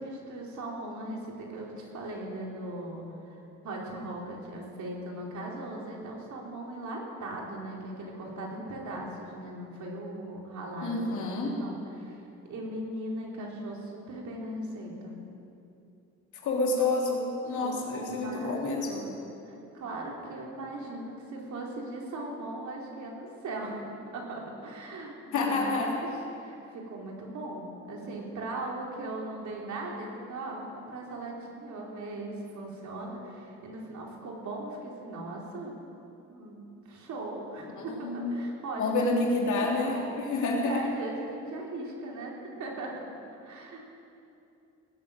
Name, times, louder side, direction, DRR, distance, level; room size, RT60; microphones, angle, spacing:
voice 1, 0.0-12.2 12.5-15.2 17.6-19.1 19.4-23.8 24.1-26.1 26.4-35.7 36.3-36.6 36.9-39.1 39.5-40.0 40.6-43.1 43.3-43.8, right 2 dB, 70° right, -2 dB, 3.8 m, -39 dB
voice 2, 10.8-11.6 16.4-19.1 25.3-25.9 37.8-38.3 38.8-40.8, left 3 dB, 75° left, -1 dB, 3.1 m, -28 dB
19.0 x 7.6 x 8.9 m, 2.7 s
cardioid pair, 90°, 30 cm